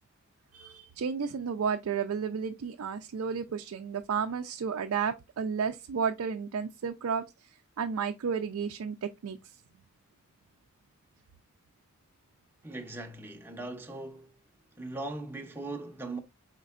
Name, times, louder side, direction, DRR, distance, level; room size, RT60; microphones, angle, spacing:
voice 1, 0.5-7.2 7.8-9.5, right 6 dB, 80° right, 0.4 m, -32 dB
voice 2, 12.6-14.4 14.8-16.2, right 2 dB, 10° right, 0.6 m, -39 dB
4.3 x 4.2 x 2.4 m
head